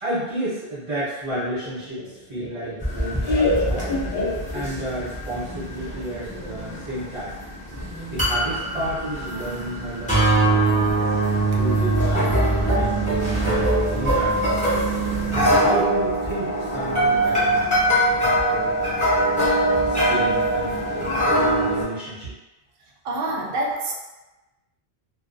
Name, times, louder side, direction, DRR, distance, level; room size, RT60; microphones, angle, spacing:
voice 1, 0.0-4.0 4.5-7.3 8.1-10.9 11.5-14.9 15.6-19.3 19.9-22.3, right 1 dB, 35° right, -12 dB, 0.8 m, -32 dB
Laughter, 1.3-5.0, left 2 dB, 60° left, 1.0 m, -26 dB
sound 1, 2.8-21.8, right 1 dB, 10° left, 0.6 m, -22 dB
voice 2, 23.0-23.9, right 2 dB, 65° right, -2 dB, 0.7 m, -26 dB
2.3 x 2.2 x 2.5 m, 1.1 s
omnidirectional pair, 1.1 m